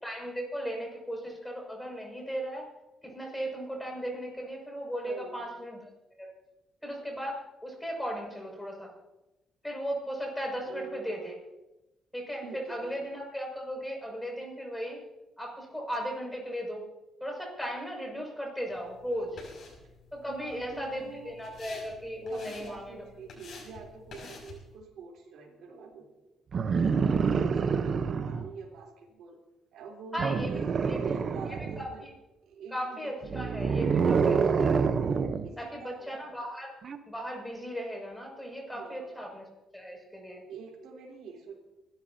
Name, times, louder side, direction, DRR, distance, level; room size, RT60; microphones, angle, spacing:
voice 1, 0.0-2.7 3.0-5.8 6.2-6.3 6.8-8.9 9.6-11.4 12.1-15.0 15.4-16.8 17.2-19.4 20.1-23.0 30.1-30.6 30.9-31.0 31.8-32.1 32.7-34.9 35.6-36.7 37.1-39.4 39.7-40.4, equal, 5° left, 0 dB, 6.3 m, -36 dB
voice 2, 5.0-5.4 10.6-11.4 12.4-13.0 19.8-19.9 20.3-21.4 22.3-26.1 26.9-29.4 29.7-32.0 32.4-34.7 35.4-36.2 38.7-39.3 40.5-41.6, right 5 dB, 80° right, -1 dB, 3.6 m, -45 dB
sound 1, 18.7-24.8, left 3 dB, 60° left, 6.0 m, -50 dB
sound 2, 26.5-28.5 30.2-31.9 33.2-35.5 36.8-37.0, right 5 dB, 50° right, 0.9 m, -27 dB
29.0 x 13.0 x 2.8 m, 0.99 s
cardioid pair, 90°, 0 cm